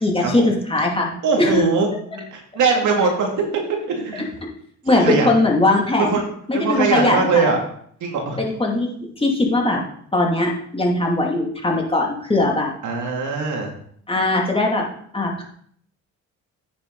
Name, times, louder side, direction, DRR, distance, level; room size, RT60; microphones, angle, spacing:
voice 1, 0.0-1.1 1.4-1.7 4.8-6.2 6.5-7.5 8.4-8.9 9.2-9.8 10.1-12.7 14.1-14.9 15.1-15.4, left 2 dB, 20° left, -1 dB, 2.5 m, -20 dB
voice 2, 1.2-3.5 3.9-4.3 4.9-5.3 6.0-7.6 8.0-8.4 12.8-13.7, right 4 dB, 75° right, 1 dB, 2.5 m, -21 dB
9.3 x 6.8 x 4.0 m, 0.63 s
cardioid pair, 90°, 30 cm